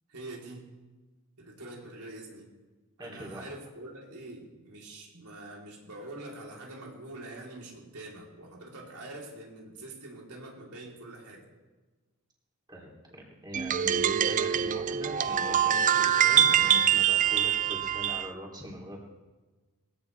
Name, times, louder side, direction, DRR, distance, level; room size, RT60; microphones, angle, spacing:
voice 1, 0.1-0.7 1.4-2.5 3.0-11.4, right 2 dB, 90° right, -3 dB, 3.9 m, -45 dB
voice 2, 3.0-3.5 12.7-19.0, equal, 20° right, -3 dB, 3.4 m, -42 dB
sound 1, 13.5-18.3, right 9 dB, 35° right, 0.4 m, -24 dB
21.0 x 16.5 x 3.5 m, 1.2 s
head